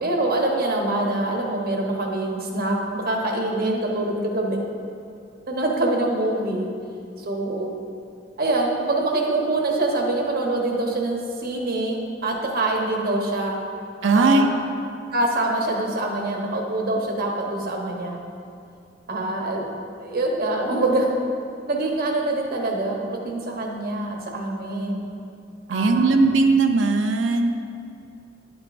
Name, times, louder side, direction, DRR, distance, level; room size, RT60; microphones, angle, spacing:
voice 1, 0.0-4.6 5.5-6.7 7.2-7.7 8.4-13.6 14.0-14.5 15.1-18.2 19.1-19.7 20.0-21.1 21.7-25.1 25.7-26.2, right 2 dB, 55° right, 0 dB, 1.1 m, -25 dB
voice 2, 14.0-14.5 25.7-27.5, right 3 dB, 80° right, 5 dB, 0.6 m, -18 dB
9.9 x 7.9 x 2.6 m, 2.4 s
head